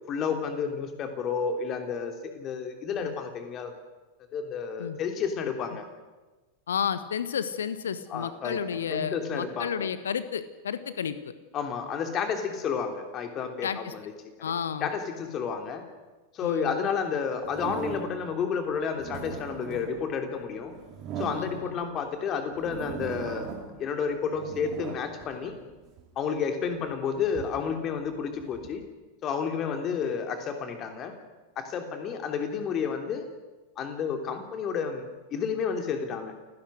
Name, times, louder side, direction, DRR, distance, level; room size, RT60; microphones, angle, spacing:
voice 1, 0.1-3.7 4.3-5.8 8.1-9.9 11.5-14.0 14.8-15.8 16.3-20.7 21.2-23.5 23.8-25.6 26.1-28.8 29.2-31.1 31.6-33.3 33.8-36.3, left 6 dB, 30° left, 5 dB, 3.2 m, -31 dB
voice 2, 6.7-11.3 13.6-13.9 14.4-14.9 16.4-16.8 21.4-21.8, left 7 dB, 65° left, 13 dB, 1.4 m, -32 dB
sound 1, 17.4-18.3 18.8-22.0 22.5-23.8 24.2-26.1 26.7-28.8, right 6 dB, 35° right, 4.0 m, -39 dB
29.0 x 16.5 x 6.4 m, 1.2 s
figure-of-eight pair, 90°, 0 cm